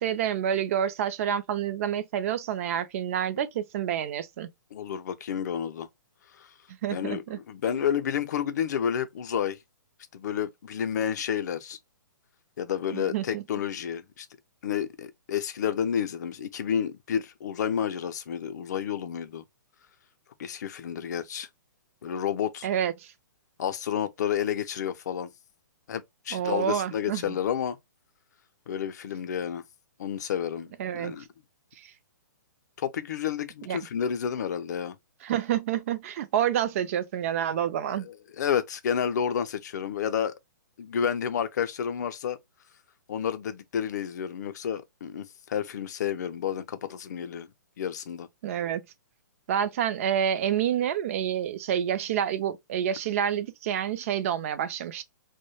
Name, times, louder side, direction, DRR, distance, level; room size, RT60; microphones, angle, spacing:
voice 1, 0.0-4.5 6.8-7.4 12.9-13.4 22.6-23.1 26.3-27.3 30.8-31.1 31.8-31.9 33.7-33.8 35.2-38.1 48.4-48.8 49.5-55.0, right 9 dB, 45° right, 0.4 m, -28 dB
voice 2, 4.7-5.9 6.4-6.5 6.9-9.6 10.1-11.8 12.6-14.3 14.6-19.4 20.4-21.5 22.0-22.7 23.6-25.3 25.9-27.8 28.7-29.6 30.0-31.2 32.8-35.0 38.1-40.3 40.8-42.4 43.1-47.5 47.8-48.3, left 8 dB, 60° left, 0.5 m, -30 dB
2.2 x 2.1 x 3.0 m
hypercardioid pair, 130°, 11 cm